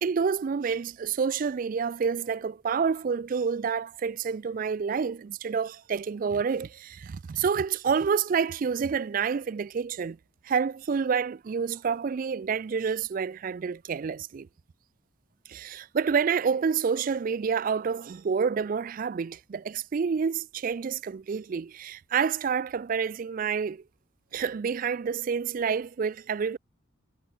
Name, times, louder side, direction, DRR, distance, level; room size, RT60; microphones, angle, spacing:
voice 1, 0.0-10.2 10.4-14.5 15.5-23.8 24.3-26.6, right 6 dB, 40° right, 0.3 m, -28 dB
head